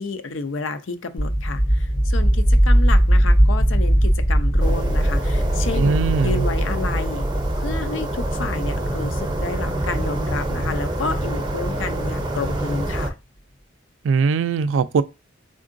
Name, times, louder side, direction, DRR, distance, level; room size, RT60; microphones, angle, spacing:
voice 1, 0.0-7.2 7.6-13.1, left 3 dB, 75° left, 0.5 m, -30 dB
sound 1, 1.2-11.9, equal, 25° left, 0.5 m, -20 dB
sound 2, 4.6-13.1, right 1 dB, 25° right, 0.5 m, -27 dB
voice 2, 5.7-6.5 14.0-15.0, right 5 dB, 80° right, 0.3 m, -20 dB
3.8 x 3.7 x 2.5 m
head